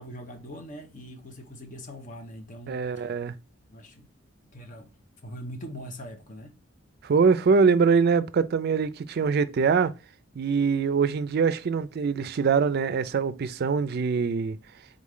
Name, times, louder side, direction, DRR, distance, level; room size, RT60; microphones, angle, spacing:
voice 1, 0.0-3.1 3.7-4.1 4.5-4.9 5.2-6.5, equal, 40° left, 0.9 m, -42 dB
voice 2, 2.7-3.3 7.0-9.9 10.4-14.6, right 5 dB, 55° right, 0.4 m, -23 dB
3.8 x 3.1 x 3.7 m
head